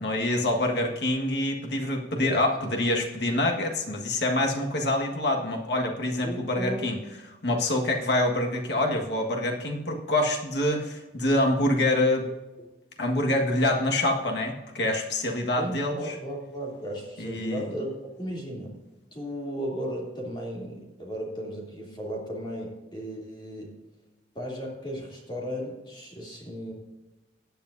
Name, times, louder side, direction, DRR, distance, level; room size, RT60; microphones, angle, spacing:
voice 1, 0.0-7.0 7.4-12.3 13.0-16.2 17.2-17.7, left 1 dB, 65° left, 1 dB, 1.7 m, -26 dB
voice 2, 6.2-6.9 15.6-18.8 19.1-23.8 24.3-26.7, equal, 25° left, -3 dB, 3.0 m, -35 dB
17.5 x 10.0 x 2.7 m, 1.1 s
head